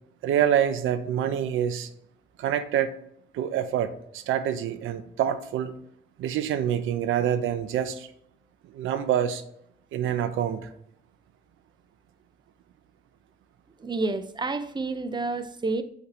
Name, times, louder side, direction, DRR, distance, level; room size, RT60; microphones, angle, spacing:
voice 1, 0.2-1.9 2.4-2.9 3.3-5.7 6.2-8.1 8.7-9.4 9.9-10.7, right 9 dB, 85° right, 0.7 m, -26 dB
voice 2, 13.8-15.8, right 3 dB, 20° right, 0.6 m, -29 dB
8.4 x 4.2 x 3.0 m
cardioid pair, 90°, 20 cm